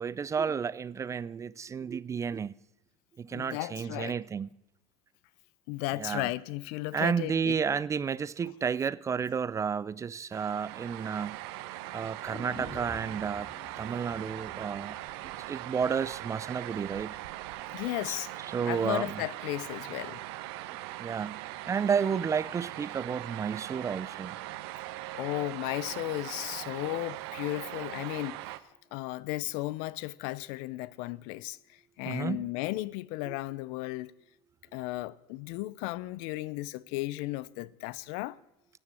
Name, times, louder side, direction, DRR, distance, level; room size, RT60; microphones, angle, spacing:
voice 1, 0.0-2.5 3.2-4.5 6.0-6.3 6.9-11.4 11.9-13.5 13.8-15.0 15.2-17.2 18.5-19.2 21.0-24.3 32.1-32.4 33.3-33.4, right 6 dB, 25° right, 0.4 m, -31 dB
voice 2, 3.3-4.2 5.7-7.6 17.7-18.3 18.7-20.2 25.1-28.4 28.9-34.1 34.7-38.4, left 19 dB, 70° left, 0.6 m, -35 dB
sound 1, 10.3-28.6, right 16 dB, 75° right, 0.9 m, -41 dB
sound 2, 12.2-16.3 16.6-16.7, left 1 dB, 20° left, 3.0 m, -48 dB
14.5 x 10.0 x 7.5 m
supercardioid pair, 105°, 13 cm